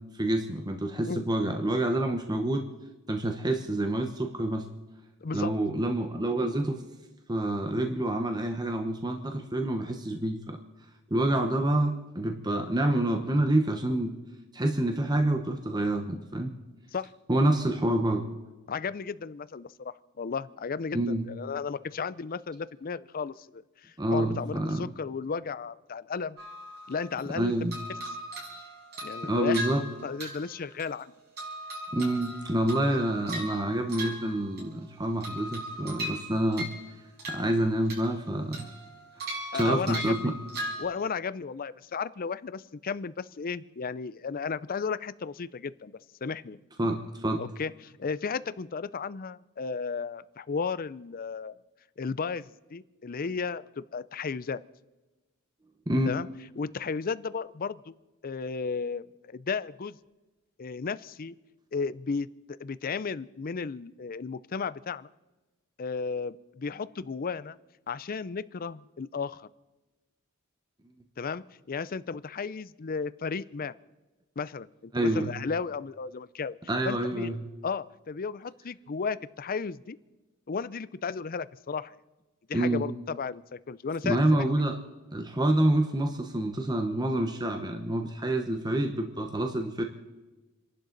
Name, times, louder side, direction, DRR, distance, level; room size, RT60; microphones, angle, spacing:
voice 1, 0.1-2.7 3.1-4.7 5.3-6.8 7.3-10.6 11.1-14.2 14.5-16.5 17.3-18.3 20.9-21.2 24.0-24.9 27.3-27.8 29.2-29.8 31.9-36.7 37.3-38.7 39.5-40.3 46.8-47.4 55.9-56.1 74.9-75.3 76.7-77.4 82.5-82.8 84.0-84.8 85.1-89.8, right 1 dB, 20° right, 5 dB, 1.0 m, -27 dB
voice 2, 5.2-5.5 16.9-17.1 18.7-26.4 26.9-27.5 29.0-29.6 30.0-31.1 39.5-40.3 40.8-45.9 46.2-46.6 47.4-51.6 52.0-54.6 56.1-56.3 56.6-57.9 58.2-60.0 60.6-61.3 61.7-65.1 65.8-67.6 67.9-69.5 71.2-73.7 74.4-76.6 76.8-77.3 77.6-80.0 80.5-81.9 82.5-84.4, left 5 dB, 40° left, 17 dB, 0.5 m, -34 dB
sound 1, 26.4-27.3 27.7-31.0 31.4-34.8 35.2-36.9 37.2-38.2 38.5-40.8, right 1 dB, 45° right, 5.9 m, -39 dB
29.0 x 11.5 x 4.0 m, 1.1 s
head